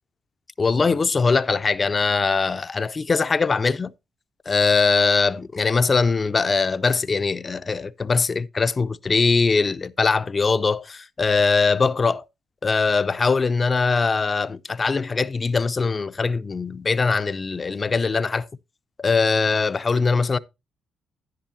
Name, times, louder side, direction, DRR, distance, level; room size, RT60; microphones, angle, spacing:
voice 1, 0.6-3.9 4.5-12.2 12.6-18.5 19.0-20.4, left 4 dB, 30° left, 0.5 m, -21 dB
10.5 x 10.0 x 2.7 m
cardioid pair, 90°, 0 cm